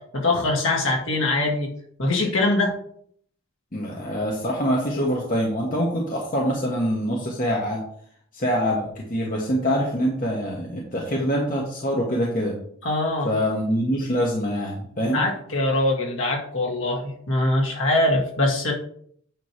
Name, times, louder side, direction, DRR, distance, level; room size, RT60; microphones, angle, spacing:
voice 1, 0.0-1.7 2.0-2.8 12.8-13.3 15.0-18.7, left 2 dB, 65° left, -1 dB, 2.0 m, -23 dB
voice 2, 3.7-7.8 8.3-12.5 13.2-15.2, equal, 40° left, -2 dB, 1.2 m, -25 dB
9.1 x 3.1 x 5.9 m, 0.64 s
head